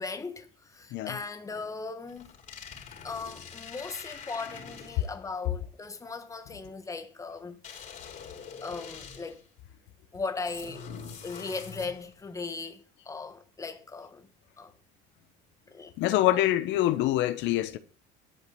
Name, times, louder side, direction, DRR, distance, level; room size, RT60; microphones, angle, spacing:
voice 1, 0.0-2.3 3.0-7.6 8.6-9.4 10.1-10.8 11.2-14.3 14.6-14.7 15.7-16.4, left 4 dB, 15° left, 1.4 m, -38 dB
sound 1, 2.1-5.2 7.6-9.5 10.5-12.2, left 6 dB, 40° left, 3.8 m, -44 dB
voice 2, 16.0-17.8, left 14 dB, 70° left, 1.1 m, -25 dB
11.5 x 5.1 x 7.7 m
cardioid pair, 125°, 19 cm